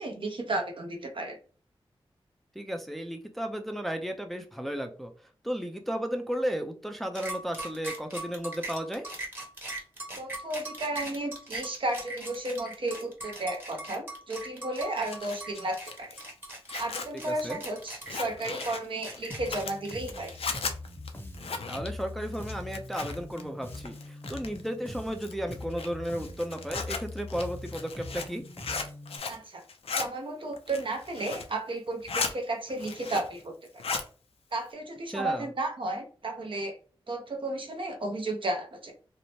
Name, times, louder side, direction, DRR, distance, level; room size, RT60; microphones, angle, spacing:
voice 1, 0.0-1.4 10.2-16.1 16.8-20.3 29.3-29.6 29.9-33.8 34.5-36.8 37.1-38.9, right 2 dB, 60° right, 3 dB, 0.7 m, -33 dB
voice 2, 2.6-9.1 17.3-17.6 21.7-28.5 35.1-35.5, equal, ahead, 5 dB, 0.4 m, -34 dB
sound 1, 7.2-20.6, right 2 dB, 20° right, 1.0 m, -40 dB
Zipper (clothing), 14.8-23.4 23.7-24.7 25.1-29.4 29.7-30.1 30.5-31.5 31.9-32.3 32.7-33.4 33.7-34.1, left 4 dB, 80° left, 0.4 m, -36 dB
Bass guitar, 19.3-29.2, left 2 dB, 20° left, 0.7 m, -42 dB
2.7 x 2.0 x 3.0 m, 0.40 s
wide cardioid pair, 70°, 10 cm